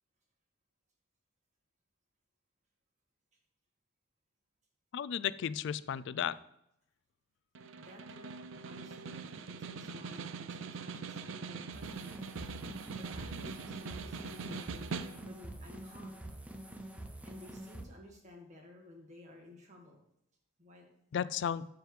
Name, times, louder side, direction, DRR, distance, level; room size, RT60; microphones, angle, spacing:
voice 1, 4.9-6.4 21.1-21.7, left 8 dB, 60° left, 17 dB, 0.3 m, -34 dB
Snare drum, 7.5-15.5, right 5 dB, 70° right, 0.5 m, -43 dB
voice 2, 7.8-8.3 8.6-9.2 9.5-12.3 12.9-14.9 15.2-16.2 17.2-20.0 20.6-20.8, left 1 dB, 35° right, 0 dB, 1.8 m, -54 dB
sound 1, 11.7-17.8, right 1 dB, 5° right, 0.6 m, -46 dB
12.5 x 4.8 x 3.2 m, 0.78 s
head